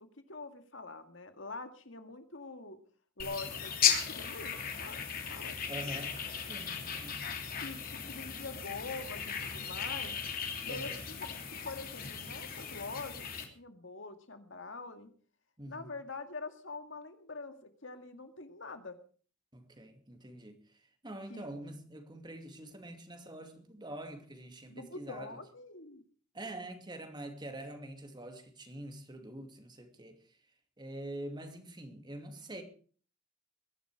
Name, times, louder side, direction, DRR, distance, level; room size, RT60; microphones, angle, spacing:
voice 1, 0.3-2.8 3.2-4.5 4.8-6.1 7.6-10.2 10.6-10.9 11.2-11.3 11.6-15.1 15.7-19.0 21.3-21.5 24.7-26.0, left 3 dB, 70° left, 2.0 m, -45 dB
sound 1, 3.2-13.5, left 7 dB, 45° left, 3.1 m, -36 dB
voice 2, 5.7-7.2 10.7-11.0 15.6-15.9 19.5-25.4 26.3-30.4 30.8-32.6, right 1 dB, 20° right, 2.5 m, -45 dB
22.0 x 11.5 x 4.9 m
head